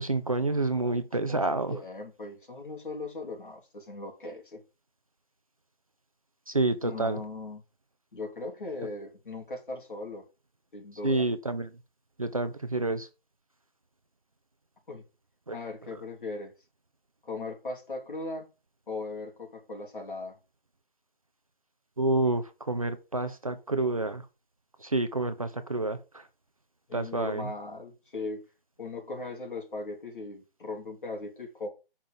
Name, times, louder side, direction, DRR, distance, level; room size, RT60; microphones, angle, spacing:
voice 1, 0.0-1.8 6.5-7.2 11.0-11.7 12.2-13.1 15.5-15.6 22.0-24.2 24.8-26.0 26.9-27.5, right 2 dB, 35° right, 0.6 m, -28 dB
voice 2, 1.3-4.6 6.8-7.6 8.1-10.2 10.7-11.3 14.9-15.0 15.5-16.5 17.2-18.5 18.9-20.4 26.9-28.4 28.8-31.7, left 3 dB, 55° left, 3.4 m, -38 dB
7.3 x 5.6 x 5.2 m
hypercardioid pair, 175°, 30 cm